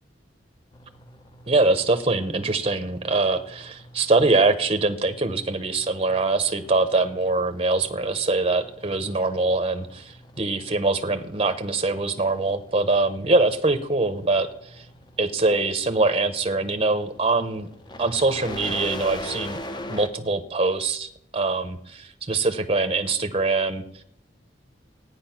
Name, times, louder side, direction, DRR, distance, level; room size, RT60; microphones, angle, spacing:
sound 1, 0.7-20.1, left 1 dB, 25° left, 0.9 m, -42 dB
voice 1, 1.5-14.9 15.2-17.7 18.0-19.6 19.9-23.8, right 3 dB, 30° right, 9 dB, 0.8 m, -23 dB
14.0 x 9.6 x 5.8 m, 0.76 s
head